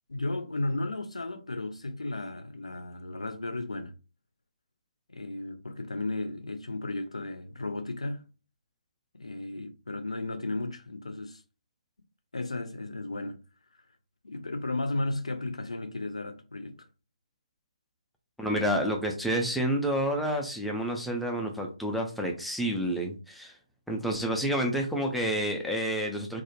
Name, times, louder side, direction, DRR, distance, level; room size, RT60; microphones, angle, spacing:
voice 1, 0.1-3.9 5.1-8.2 9.1-11.4 12.3-13.4 14.2-16.9, left 2 dB, 70° left, 0.4 m, -34 dB
voice 2, 18.4-23.5 23.9-26.4, equal, ahead, 0.3 m, -29 dB
2.3 x 2.0 x 2.9 m
figure-of-eight pair, 140°, 3 cm